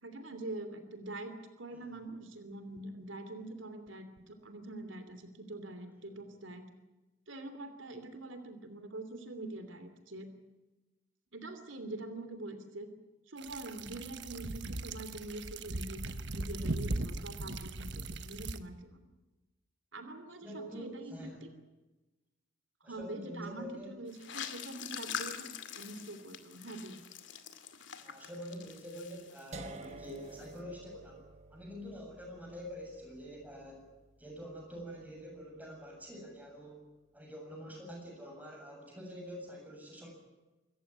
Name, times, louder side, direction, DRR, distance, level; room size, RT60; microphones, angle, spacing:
voice 1, 0.0-6.6 7.3-10.3 11.3-12.9 13.3-19.1 19.9-21.5 22.8-27.0, right 2 dB, 85° right, 9 dB, 2.9 m, -44 dB
sound 1, 13.4-18.6, right 2 dB, 65° right, 1.3 m, -38 dB
voice 2, 20.4-21.4 22.8-24.0 28.0-31.2 31.5-33.8 34.2-36.8 37.1-40.1, equal, 10° right, 0 dB, 7.6 m, -46 dB
sound 2, 24.1-29.8 30.1-30.5, left 7 dB, 75° left, 2.3 m, -44 dB
sound 3, 29.5-35.5, right 2 dB, 35° right, 1.5 m, -51 dB
26.5 x 14.5 x 9.9 m, 1.1 s
head